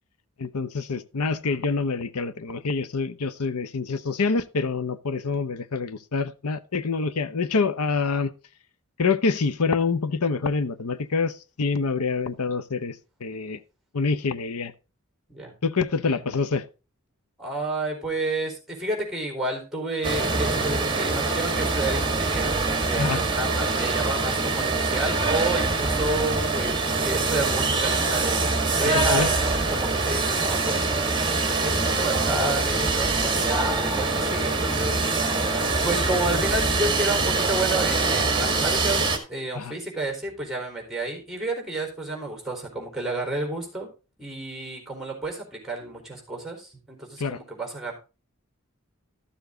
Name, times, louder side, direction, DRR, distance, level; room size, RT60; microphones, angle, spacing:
voice 1, 0.4-8.3 9.0-13.6 13.9-14.7 15.6-16.7 23.0-23.2 28.9-29.3 34.8-34.9 39.5-39.7 47.2-47.4, left 4 dB, 90° left, 0.8 m, -26 dB
voice 2, 17.4-30.9 31.6-35.4 35.8-43.9 44.2-47.9, right 2 dB, ahead, 4.0 m, -31 dB
sound 1, 20.0-39.2, right 3 dB, 20° right, 1.8 m, -24 dB
12.5 x 7.0 x 3.8 m
head